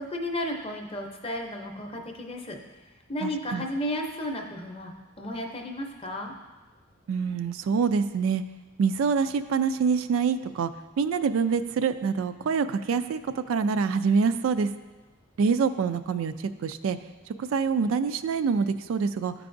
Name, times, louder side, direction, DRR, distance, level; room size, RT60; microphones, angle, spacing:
voice 1, 0.0-2.6 3.1-6.3, left 1 dB, 25° left, 2 dB, 0.6 m, -33 dB
voice 2, 3.2-3.6 7.1-8.4 8.8-10.7 11.0-14.7 15.4-16.3 16.6-17.0 17.4-19.3, right 5 dB, 75° right, 11 dB, 0.3 m, -25 dB
12.5 x 4.7 x 2.6 m, 1.2 s
head